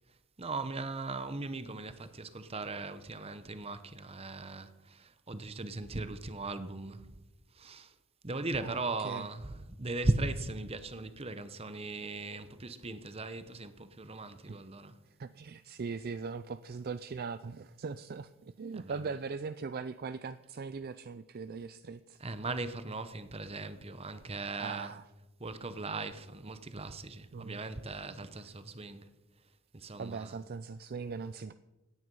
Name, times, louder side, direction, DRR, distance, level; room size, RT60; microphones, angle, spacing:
voice 1, 0.4-7.2 7.5-7.9 8.2-15.0 18.7-19.0 22.2-25.0 25.4-29.1 29.7-30.4, right 2 dB, 25° right, 0.9 m, -38 dB
voice 2, 8.6-9.3 14.5-14.6 15.1-22.2 24.6-25.0 27.3-27.6 30.0-31.5, right 5 dB, 45° right, 0.4 m, -40 dB
17.0 x 9.4 x 5.5 m
head